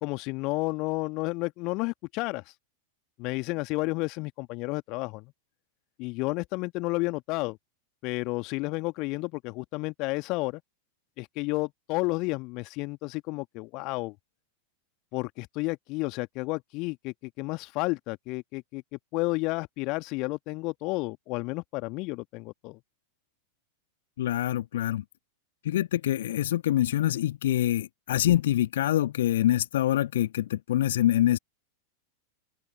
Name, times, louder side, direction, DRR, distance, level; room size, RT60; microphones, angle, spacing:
voice 1, 0.0-2.5 3.2-5.2 6.0-7.6 8.0-10.6 11.2-14.1 15.1-18.8 19.1-22.8, left 24 dB, 40° left, 1.4 m, -31 dB
voice 2, 24.2-25.0 25.6-31.4, left 13 dB, 60° left, 1.5 m, -25 dB
open air
figure-of-eight pair, 90°, 0 cm